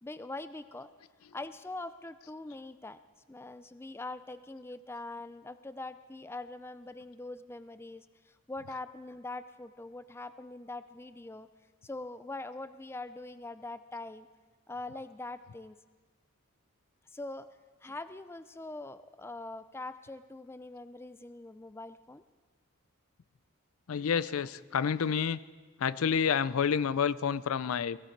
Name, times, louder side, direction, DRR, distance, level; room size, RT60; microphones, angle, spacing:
voice 1, 0.0-0.9 1.3-3.0 3.3-11.5 11.8-14.3 14.7-15.8 17.1-17.5 17.8-22.2, left 2 dB, 10° left, 13 dB, 0.4 m, -43 dB
voice 2, 23.9-25.4 25.8-28.0, left 7 dB, 75° left, 17 dB, 0.4 m, -29 dB
18.0 x 16.5 x 4.6 m, 1.4 s
head